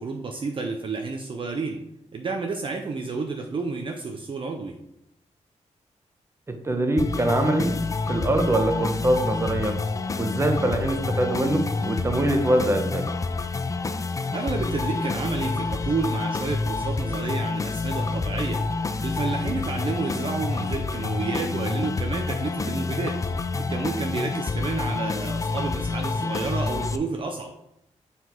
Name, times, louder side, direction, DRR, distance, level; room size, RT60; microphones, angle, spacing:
voice 1, 0.0-1.8 2.1-4.7 14.3-18.6 19.0-23.2 23.7-27.5, right 4 dB, 45° right, 3 dB, 0.6 m, -30 dB
voice 2, 6.5-7.8 8.1-9.8 10.2-13.1, right 1 dB, 20° right, 5 dB, 0.9 m, -23 dB
sound 1, 7.0-27.0, left 3 dB, 25° left, 0.4 m, -28 dB
7.3 x 4.1 x 4.5 m, 0.79 s
wide cardioid pair, 135°, 13 cm